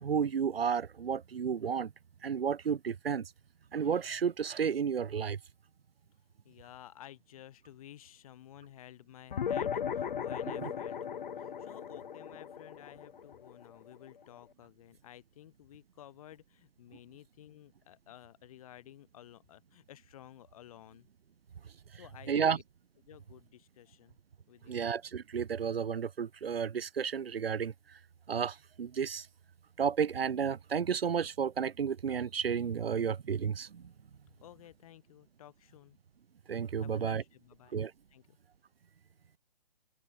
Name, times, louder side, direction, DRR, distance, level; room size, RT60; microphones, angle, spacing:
voice 1, 0.0-1.9 2.2-3.3 3.7-5.4 10.6-10.7 22.3-22.6 24.7-27.7 28.3-29.3 29.8-33.9 36.5-37.2 37.7-37.9, right 7 dB, 80° right, 1.0 m, -32 dB
voice 2, 6.4-21.1 21.9-22.6 23.1-24.2 24.5-24.9 34.4-36.0 36.8-37.8 38.1-38.4, left 12 dB, 35° left, 5.4 m, -54 dB
sound 1, 9.3-14.1, left 8 dB, 55° left, 1.8 m, -37 dB
hypercardioid pair, 155°, 29 cm